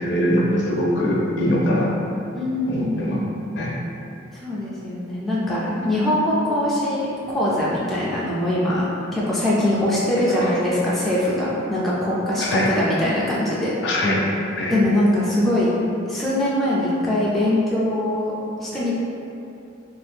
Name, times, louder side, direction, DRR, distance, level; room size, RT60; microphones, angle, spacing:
voice 1, 0.0-1.9 2.7-3.2 3.6-3.7 10.3-10.5 12.4-12.7 13.8-14.2 14.6-14.7, left 1 dB, 60° left, -3 dB, 0.5 m, -22 dB
voice 2, 2.3-3.3 4.3-13.7 14.7-18.3 18.6-18.9, left 1 dB, ahead, -9 dB, 0.4 m, -22 dB
2.7 x 2.4 x 3.4 m, 2.7 s
head